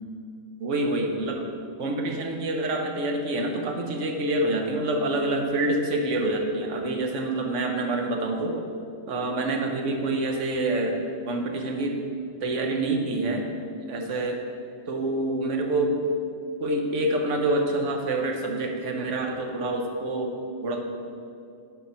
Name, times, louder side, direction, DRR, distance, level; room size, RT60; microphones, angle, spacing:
voice 1, 0.6-1.5 1.8-8.6 9.1-11.0 11.2-12.0 12.4-13.5 13.9-14.4 14.9-16.0 16.6-20.4 20.6-20.8, right 2 dB, 75° right, 3 dB, 1.2 m, -27 dB
9.2 x 4.6 x 5.5 m, 2.4 s
omnidirectional pair, 1.3 m